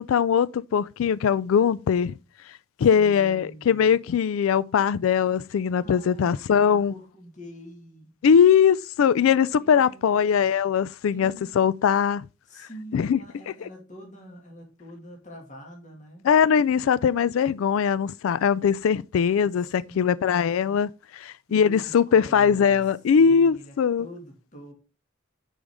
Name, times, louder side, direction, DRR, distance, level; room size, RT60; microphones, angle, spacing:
voice 1, 0.0-2.1 2.8-6.9 8.2-12.3 12.6-12.7 12.9-13.2 16.2-24.1, left 7 dB, 90° left, 0.3 m, -21 dB
voice 2, 2.8-4.0 5.8-8.1 9.6-10.2 11.1-11.5 12.4-16.3 19.5-20.6 21.5-22.8 23.2-24.7, equal, 40° left, 2.1 m, -45 dB
8.9 x 5.0 x 3.5 m
head